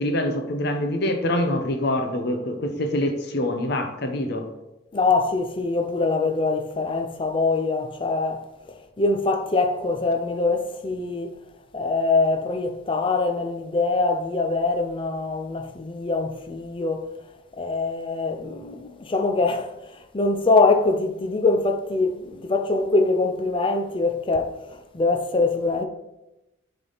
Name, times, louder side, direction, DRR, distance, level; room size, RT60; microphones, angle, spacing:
voice 1, 0.0-4.5, left 1 dB, 55° left, 0.8 m, -25 dB
voice 2, 4.9-8.5 9.0-11.3 11.7-17.1 17.6-25.8, left 3 dB, 25° left, 0.4 m, -23 dB
7.0 x 3.5 x 3.9 m
head